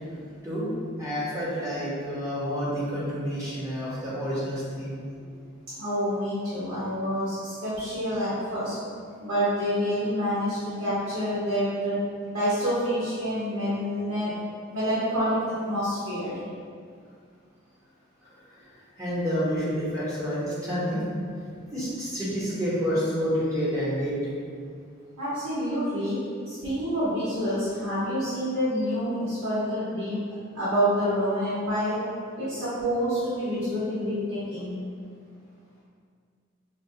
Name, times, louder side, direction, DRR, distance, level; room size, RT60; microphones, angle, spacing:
voice 1, 1.0-5.0 19.0-21.0 21.7-24.4, equal, 15° right, -9 dB, 0.9 m, -29 dB
voice 2, 5.7-8.7 9.2-12.0 12.3-14.3 14.7-15.3 15.6-16.3 25.2-26.2 26.5-30.2 30.5-32.0 32.4-34.8, equal, 90° right, -12 dB, 1.1 m, -27 dB
5.0 x 2.3 x 2.6 m, 2.1 s
head